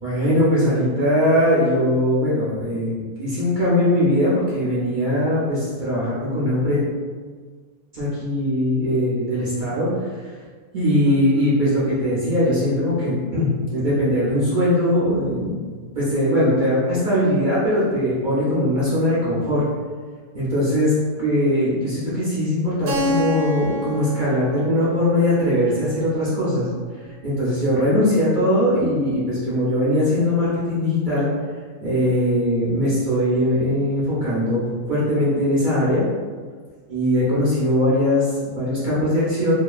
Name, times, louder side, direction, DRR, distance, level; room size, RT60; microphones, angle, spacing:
voice 1, 0.0-6.8 7.9-10.2 10.7-15.6 15.9-19.6 20.3-20.9 21.2-26.7 27.2-31.3 31.8-36.0 36.9-39.5, left 1 dB, 60° right, -9 dB, 0.5 m, -20 dB
Keyboard (musical), 22.9-27.4, left 2 dB, 80° right, 1.1 m, -30 dB
2.8 x 2.2 x 2.4 m, 1.5 s
omnidirectional pair, 1.7 m